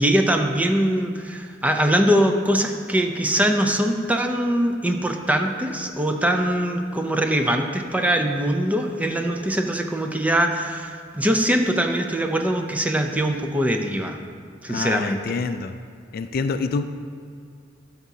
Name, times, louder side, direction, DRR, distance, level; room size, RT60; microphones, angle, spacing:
voice 1, 0.0-14.2 14.6-15.2, right 1 dB, 10° right, 4 dB, 0.5 m, -22 dB
voice 2, 14.7-15.7 16.1-16.8, left 4 dB, 50° left, 9 dB, 0.3 m, -26 dB
13.0 x 6.0 x 2.8 m, 2.2 s
head